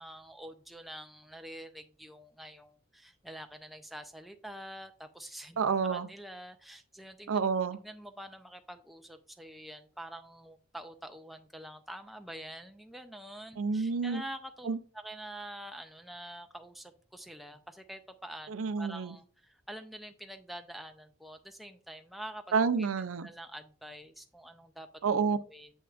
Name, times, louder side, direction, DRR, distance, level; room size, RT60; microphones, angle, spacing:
voice 1, 0.0-7.4 7.8-18.5 18.8-22.9 23.2-24.9 25.4-25.7, right 1 dB, ahead, 0.4 m, -46 dB
voice 2, 5.6-6.1 7.3-7.8 13.6-14.2 14.6-14.8 18.5-19.2 22.5-23.3 25.0-25.4, right 5 dB, 80° right, 0.5 m, -29 dB
7.2 x 5.8 x 2.4 m
head